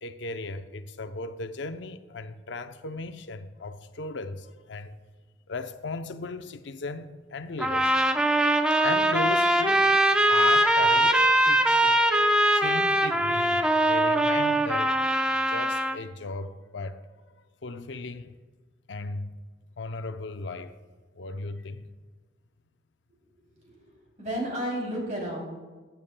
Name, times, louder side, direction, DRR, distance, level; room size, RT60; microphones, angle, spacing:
voice 1, 0.0-4.9 5.5-8.0 8.8-12.0 12.5-15.2 15.5-17.0 17.6-18.4 18.9-19.3 19.8-20.7 21.1-21.9, left 3 dB, 80° left, 0.6 m, -36 dB
sound 1, 7.6-16.0, right 1 dB, 5° right, 0.4 m, -22 dB
voice 2, 24.2-25.4, right 1 dB, 40° right, 3.0 m, -32 dB
15.5 x 9.0 x 2.2 m
head